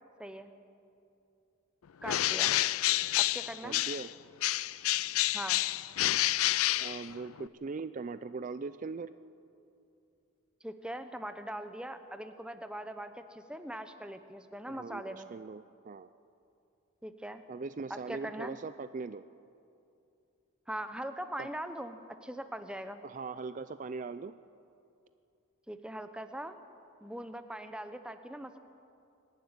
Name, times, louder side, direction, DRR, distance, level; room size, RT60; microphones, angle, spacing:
voice 1, 0.2-0.5 2.0-2.5 3.1-3.9 5.3-5.6 10.6-15.3 17.0-17.4 17.9-18.6 20.7-23.0 25.7-26.6 27.0-28.6, right 1 dB, 5° right, 9 dB, 0.8 m, -41 dB
Bird, 2.0-4.1 4.4-7.5, left 15 dB, 85° left, 0.4 m, -29 dB
voice 2, 3.6-4.1 6.8-9.1 14.7-16.1 17.5-19.3 21.4-21.5 23.0-24.3, right 4 dB, 35° right, 13 dB, 0.4 m, -40 dB
24.0 x 11.5 x 9.6 m, 2.6 s
head